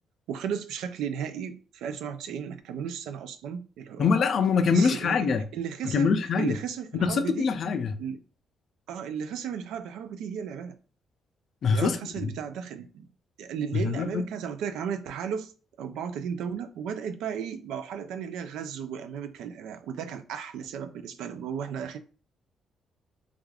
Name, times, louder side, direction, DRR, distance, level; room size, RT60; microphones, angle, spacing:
voice 1, 0.3-4.1 4.7-5.2 5.5-7.5 8.0-8.2 8.9-10.8 11.7-13.1 13.4-15.5 15.8-22.0, right 7 dB, 85° right, 0.3 m, -35 dB
voice 2, 4.0-5.4 5.8-6.6 6.9-8.0 11.6-12.3 13.7-14.2, left 5 dB, 60° left, 0.4 m, -24 dB
3.3 x 2.4 x 2.3 m
cardioid pair, 90°, 0 cm